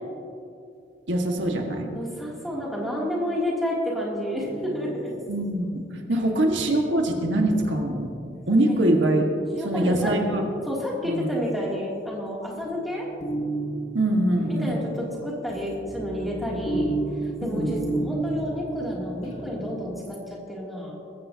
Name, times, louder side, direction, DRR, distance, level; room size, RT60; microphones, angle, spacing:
voice 1, 1.1-1.9 5.3-5.8 6.1-8.1 8.5-9.3 9.6-10.4 11.0-11.3 13.9-14.7 17.4-17.8, right 1 dB, 85° right, 2 dB, 1.8 m, -23 dB
sound 1, 1.4-2.5 4.4-5.4 7.1-8.1 9.9-11.0 12.6-20.0, right 2 dB, 40° left, 2.3 m, -34 dB
voice 2, 1.9-5.1 9.5-10.1 10.7-13.1 14.5-16.9 17.2-21.0, equal, ahead, -5 dB, 2.8 m, -30 dB
22.5 x 14.5 x 2.9 m, 2.5 s
head